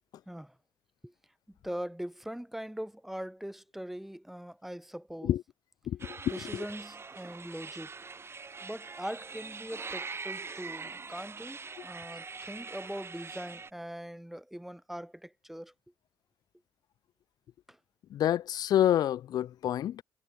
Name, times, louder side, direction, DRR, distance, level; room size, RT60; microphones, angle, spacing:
voice 1, 1.5-5.3 6.3-7.9 8.6-15.7 17.7-17.8, equal, 5° right, 1.5 m, -41 dB
voice 2, 5.9-6.6 18.1-20.0, left 11 dB, 60° left, 0.5 m, -28 dB
sound 1, 6.0-13.7, right 4 dB, 35° right, 4.7 m, -43 dB
supercardioid pair, 65°, 7 cm